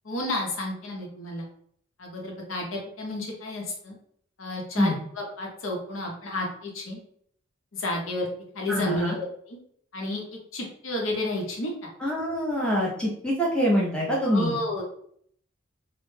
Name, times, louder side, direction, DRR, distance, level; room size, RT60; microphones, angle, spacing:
voice 1, 0.0-1.5 2.0-4.0 4.4-7.0 7.7-8.2 8.5-9.6 9.9-10.2 10.5-11.9 14.2-14.8, left 1 dB, 75° left, -1 dB, 0.7 m, -31 dB
voice 2, 8.7-9.2 12.0-14.6, equal, 5° left, -4 dB, 0.5 m, -25 dB
2.1 x 2.0 x 3.1 m, 0.64 s
head